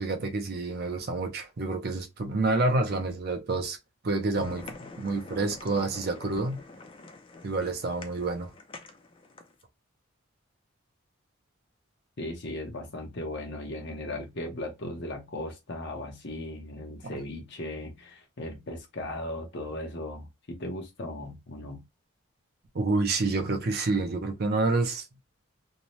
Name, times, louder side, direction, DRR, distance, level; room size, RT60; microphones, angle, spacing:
voice 1, 0.0-3.8 4.0-6.6 7.4-8.5 17.0-17.2 22.7-25.0, right 3 dB, 45° right, 0.5 m, -28 dB
sound 1, 4.3-9.6, left 3 dB, 25° left, 0.4 m, -45 dB
voice 2, 12.2-21.8, left 1 dB, 55° left, 0.8 m, -37 dB
2.7 x 2.1 x 3.0 m
head